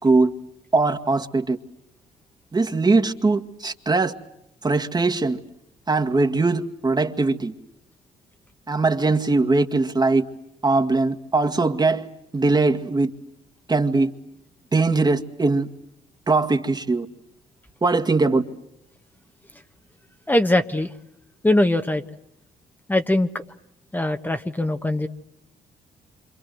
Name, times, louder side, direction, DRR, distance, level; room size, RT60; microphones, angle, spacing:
voice 1, 0.0-0.3 0.7-1.6 2.5-4.1 4.6-5.4 5.9-7.5 8.7-10.3 10.6-12.1 12.3-13.1 13.7-14.1 14.7-15.7 16.3-17.1 17.8-18.4, right 3 dB, 25° right, 2.0 m, -20 dB
voice 2, 20.3-20.9 21.4-22.0 22.9-23.4 23.9-25.1, left 1 dB, 10° left, 1.5 m, -21 dB
28.0 x 26.5 x 7.9 m
cardioid pair, 80°, 16 cm